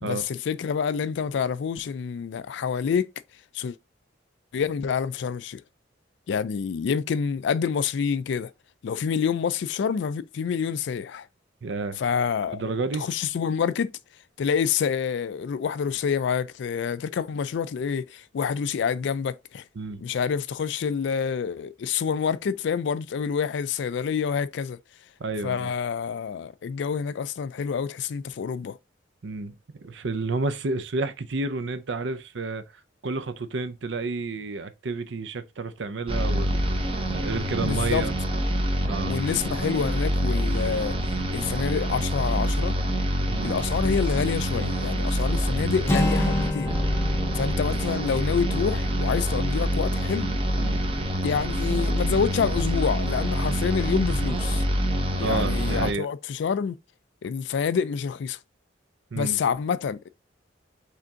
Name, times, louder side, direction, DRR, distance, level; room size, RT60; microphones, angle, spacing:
voice 1, 0.0-3.1 3.5-3.8 4.5-5.6 6.3-8.5 8.8-11.3 12.0-12.6 13.0-13.9 14.4-19.6 20.0-24.8 25.4-28.8 37.6-38.1 39.1-41.0 41.3-42.8 43.4-46.8 47.3-50.3 51.2-54.6 55.2-56.8 57.2-58.4 59.1-60.1, left 6 dB, 65° left, 0.3 m, -27 dB
voice 2, 11.6-12.0 12.5-13.1 19.8-20.0 25.2-25.7 29.2-32.6 33.0-36.6 37.1-38.1 38.9-39.1 43.3-43.5 50.6-50.8 55.2-56.1 59.1-59.4, right 3 dB, 65° right, 0.6 m, -30 dB
sound 1, 36.1-55.9, equal, 30° right, 0.7 m, -26 dB
Acoustic guitar, 45.9-49.8, left 2 dB, 15° left, 0.7 m, -30 dB
5.0 x 3.5 x 2.8 m
head